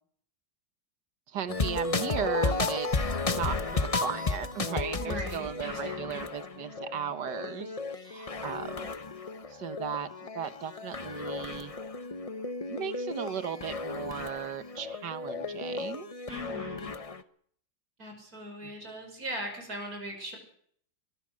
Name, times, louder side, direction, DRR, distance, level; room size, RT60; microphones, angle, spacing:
voice 1, 1.3-8.9 9.5-11.7 12.7-16.1 18.6-18.7, right 8 dB, 65° right, 12 dB, 1.9 m, -36 dB
sound 1, 1.5-17.2, left 3 dB, 30° left, 0.7 m, -34 dB
voice 2, 5.0-6.3 16.3-17.0 18.0-20.4, equal, 50° right, 3 dB, 6.4 m, -39 dB
23.5 x 20.5 x 6.4 m, 0.63 s
omnidirectional pair, 2.0 m